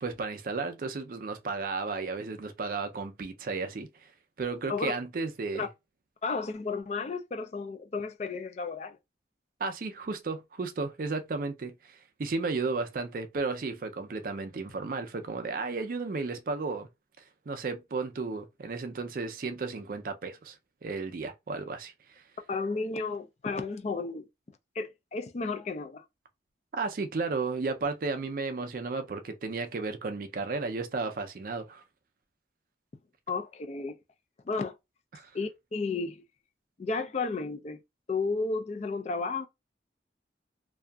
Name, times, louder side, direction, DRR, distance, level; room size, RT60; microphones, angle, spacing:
voice 1, 0.0-4.1 4.4-5.7 9.6-16.9 17.5-20.6 20.8-21.9 26.7-31.8 35.1-35.3, right 4 dB, 50° right, 0.4 m, -33 dB
voice 2, 6.2-9.0 22.5-24.3 24.8-26.0 33.3-34.0 34.5-34.8 35.3-36.2 36.8-37.8 38.1-39.5, left 4 dB, 35° left, 0.3 m, -33 dB
2.6 x 2.4 x 2.2 m
head